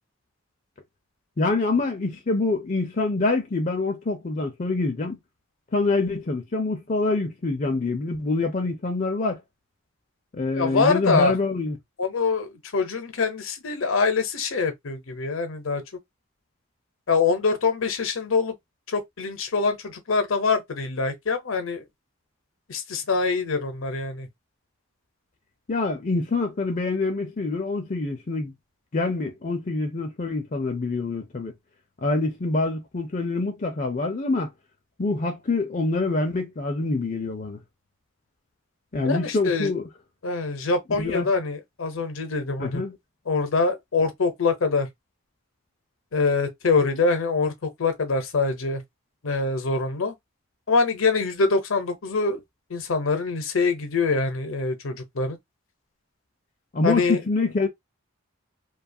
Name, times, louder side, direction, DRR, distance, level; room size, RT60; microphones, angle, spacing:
voice 1, 1.4-5.2 5.7-9.4 10.3-11.8 25.7-28.5 28.9-31.5 32.0-34.5 35.0-37.6 38.9-39.9 41.0-41.3 42.6-43.0 56.7-57.7, left 3 dB, 40° left, 0.4 m, -25 dB
voice 2, 10.5-11.3 12.0-15.8 17.1-18.5 18.9-21.9 22.7-24.3 39.0-39.7 40.2-42.8 43.3-44.9 46.1-48.8 49.2-50.1 50.7-52.4 52.7-55.4 56.8-57.2, left 4 dB, 75° left, 0.7 m, -24 dB
2.7 x 2.3 x 2.6 m
head